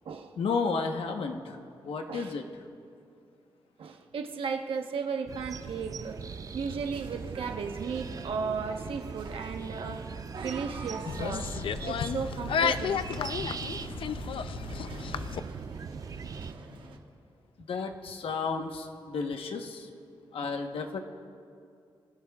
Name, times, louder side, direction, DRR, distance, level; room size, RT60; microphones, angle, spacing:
voice 1, 0.4-1.6 1.8-2.4 17.6-19.9 20.3-21.0, left 4 dB, 90° left, 4 dB, 1.1 m, -32 dB
voice 2, 3.8-6.2 6.5-11.5 11.9-13.0 20.4-20.6, right 5 dB, 80° right, 4 dB, 1.1 m, -35 dB
sound 1, 5.3-16.5, right 5 dB, 40° right, 0.4 m, -40 dB
sound 2, 6.0-17.0, right 4 dB, 65° right, 1.3 m, -47 dB
sound 3, 11.0-15.4, left 7 dB, 70° left, 0.5 m, -32 dB
24.5 x 16.0 x 2.4 m, 2.4 s
wide cardioid pair, 135°, 9 cm